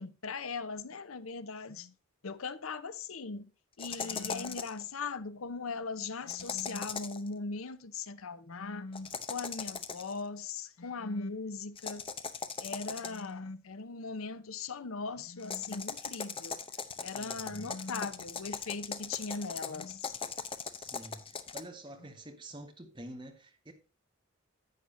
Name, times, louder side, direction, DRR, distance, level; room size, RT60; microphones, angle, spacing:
voice 1, 0.0-1.9 2.2-3.5 3.8-12.0 12.6-16.6 17.0-20.1, left 4 dB, 90° left, 0.7 m, -39 dB
sound 1, 3.8-4.8 6.3-7.3 8.9-10.2 11.8-13.3 15.4-21.6, left 5 dB, 25° left, 0.6 m, -40 dB
voice 2, 17.1-17.7 20.7-23.7, right 1 dB, 25° right, 1.4 m, -48 dB
10.5 x 8.4 x 2.6 m
head